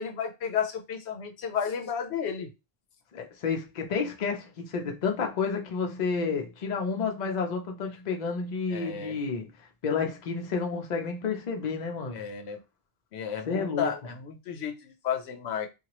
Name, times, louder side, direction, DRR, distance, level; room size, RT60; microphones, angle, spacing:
voice 1, 0.0-2.5 8.7-9.2 12.1-12.6 13.1-15.7, left 7 dB, 85° left, 0.9 m, -32 dB
voice 2, 3.1-12.2 13.5-13.9, left 5 dB, 50° left, 0.7 m, -30 dB
2.8 x 2.4 x 2.9 m
omnidirectional pair, 1.1 m